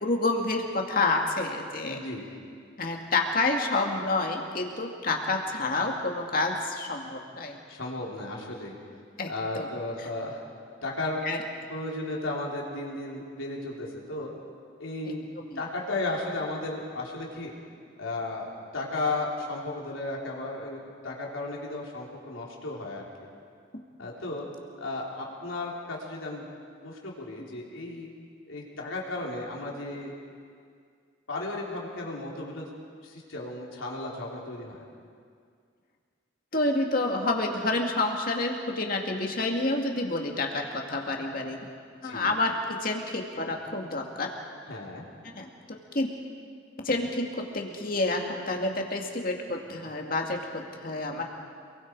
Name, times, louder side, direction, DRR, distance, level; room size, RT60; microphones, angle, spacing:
voice 1, 0.0-2.0 2.8-7.6 9.2-9.7 11.2-11.4 15.5-15.6 36.5-41.6 42.0-44.3 45.3-46.1 46.8-51.2, left 2 dB, 45° left, 1 dB, 2.3 m, -29 dB
voice 2, 1.8-2.3 7.7-8.8 9.3-10.4 10.8-11.3 11.7-14.3 14.8-17.5 18.0-18.5 18.7-23.1 24.0-24.4 24.8-26.5 26.8-28.1 28.5-30.2 31.3-32.7 33.0-34.8 42.0-42.3 44.7-45.0 51.1-51.2, left 2 dB, 90° left, -3 dB, 3.9 m, -34 dB
28.0 x 22.0 x 4.8 m, 2.2 s
head